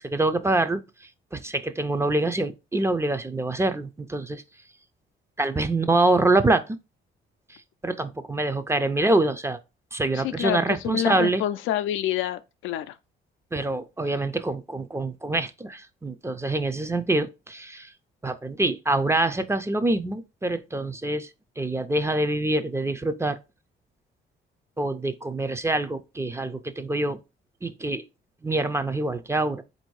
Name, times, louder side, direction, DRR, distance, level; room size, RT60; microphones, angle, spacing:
voice 1, 0.0-4.4 5.4-6.8 7.8-9.6 9.9-11.4 13.5-17.9 18.2-21.3 21.6-23.4 24.8-27.2 27.6-28.0 28.4-29.6, right 2 dB, 15° right, 0.4 m, -25 dB
voice 2, 10.1-13.0, left 12 dB, 85° left, 0.4 m, -27 dB
3.9 x 2.6 x 4.6 m
cardioid pair, 90°, 20 cm